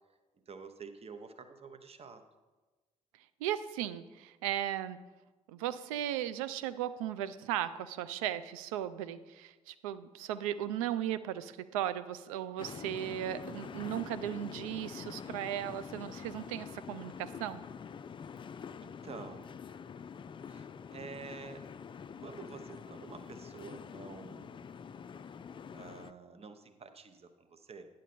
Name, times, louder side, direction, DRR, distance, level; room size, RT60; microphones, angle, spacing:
voice 1, 0.5-2.2 18.8-19.5 20.5-21.6 22.2-24.7 25.7-27.9, right 5 dB, 35° right, 8 dB, 0.8 m, -49 dB
voice 2, 3.4-5.0 5.5-17.6, right 11 dB, 75° right, 14 dB, 0.4 m, -36 dB
sound 1, 12.6-26.1, left 6 dB, 30° left, 0.4 m, -46 dB
10.0 x 6.4 x 4.2 m, 1.2 s
figure-of-eight pair, 40°, 18 cm